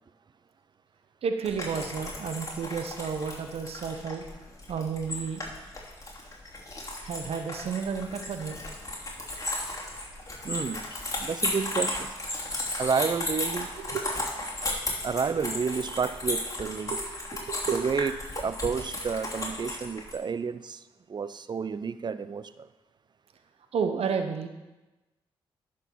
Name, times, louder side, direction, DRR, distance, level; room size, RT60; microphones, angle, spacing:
voice 1, 1.2-4.2 4.7-5.5 7.0-8.6 13.8-14.1 16.9-17.0 17.3-17.8 23.7-24.5, right 6 dB, 70° right, 7 dB, 0.9 m, -31 dB
sound 1, 1.4-20.2, left 1 dB, 30° left, 2.9 m, -35 dB
voice 2, 10.4-10.8 11.2-12.1 12.8-13.7 15.0-17.0 17.7-22.7, right 5 dB, 45° right, 14 dB, 0.5 m, -30 dB
10.5 x 6.2 x 4.7 m, 1.1 s
supercardioid pair, 50°, 11 cm